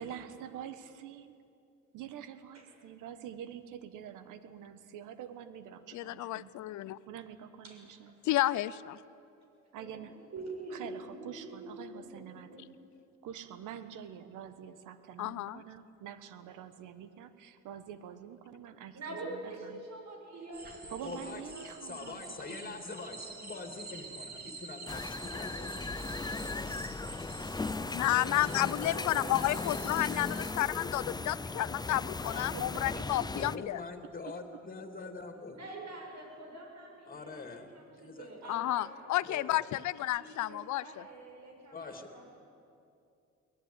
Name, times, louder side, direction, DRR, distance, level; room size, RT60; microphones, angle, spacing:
voice 1, 0.0-1.4 1.9-6.5 7.1-8.1 9.7-10.2 10.7-12.7 13.2-19.0 19.3-19.8 20.9-22.8 32.4-33.5, right 9 dB, 90° right, 11 dB, 1.4 m, -46 dB
voice 2, 5.9-7.0 8.3-9.0 15.2-15.6 27.9-33.8 38.5-40.8, left 15 dB, 70° left, 17 dB, 0.6 m, -31 dB
voice 3, 9.7-10.1 10.3-12.7 18.9-23.7 28.5-29.7 35.5-38.9 39.3-39.7 40.2-42.3, right 2 dB, 65° right, 1 dB, 7.2 m, -46 dB
sound 1, 20.5-30.5, right 3 dB, 30° right, 3.7 m, -47 dB
voice 4, 21.0-21.4 21.8-25.8 32.2-32.6 33.4-35.6 37.1-37.7 38.0-38.3 39.2-39.6 41.7-42.1, left 3 dB, 30° left, 6 dB, 3.0 m, -44 dB
sound 2, 24.9-33.6, left 3 dB, 15° left, 0.6 m, -37 dB
23.0 x 17.5 x 9.9 m, 2.6 s
cardioid pair, 90°, 30 cm